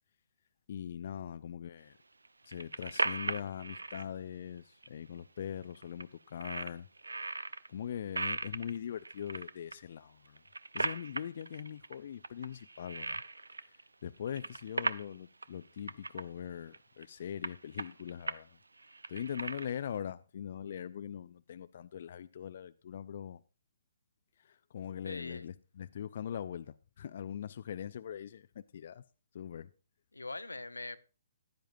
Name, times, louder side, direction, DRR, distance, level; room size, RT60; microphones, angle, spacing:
voice 1, 0.7-2.0 2.4-6.9 7.7-10.4 10.7-13.2 13.6-18.6 19.1-23.4 24.4-29.0 29.3-29.7, left 9 dB, 50° left, 0.4 m, -42 dB
sound 1, 2.3-4.0 4.8-4.9 5.2-5.3 5.6-6.0 6.4-7.7 8.2-9.7 10.3-12.0 12.2-13.9 14.2-15.1 15.4-15.5 15.8-16.2 16.7-17.0 17.4-18.4 18.8-20.0, right 3 dB, 80° right, 0.5 m, -38 dB
voice 2, 25.0-25.5 30.1-31.0, left 2 dB, 85° left, 0.8 m, -42 dB
14.5 x 10.5 x 2.6 m
figure-of-eight pair, 130°, 0 cm